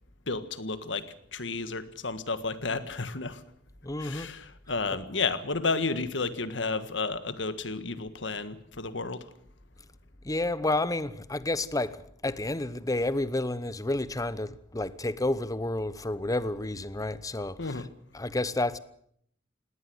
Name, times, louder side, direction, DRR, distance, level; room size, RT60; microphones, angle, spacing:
voice 1, 0.3-1.1 1.3-3.4 4.0-9.3 17.6-17.9, left 3 dB, 90° left, 1.6 m, -32 dB
voice 2, 3.8-4.3 4.7-5.0 10.2-17.8 18.1-18.8, left 2 dB, 20° left, 0.9 m, -30 dB
19.5 x 18.0 x 8.0 m
head